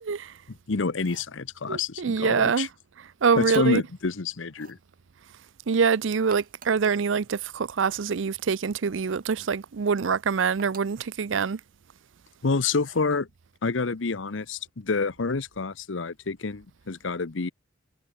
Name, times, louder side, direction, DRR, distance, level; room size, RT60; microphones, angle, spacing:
voice 1, 0.1-0.4 1.7-2.7 3.0-3.8 5.7-11.6, right 5 dB, 75° right, 0.5 m, -25 dB
voice 2, 0.7-2.7 3.3-4.8 12.4-13.3 13.6-17.5, left 4 dB, 75° left, 0.9 m, -28 dB
sound 1, 0.9-1.4 3.3-3.9 4.5-4.8 6.1-6.9 9.0-9.3 10.6-11.0 12.7-13.1, right 5 dB, 45° right, 4.2 m, -49 dB
head